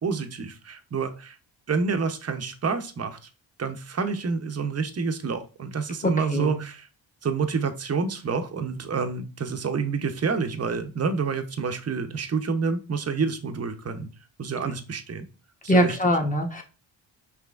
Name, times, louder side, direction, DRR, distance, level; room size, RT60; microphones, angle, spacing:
voice 1, 0.0-1.4 1.7-3.2 3.6-6.9 7.2-14.1 14.4-15.3 15.6-16.0, right 5 dB, 30° right, 8 dB, 0.7 m, -28 dB
voice 2, 6.0-6.6 15.7-16.6, equal, 15° left, 2 dB, 1.0 m, -23 dB
5.8 x 3.0 x 2.4 m, 0.34 s
cardioid pair, 65°, 47 cm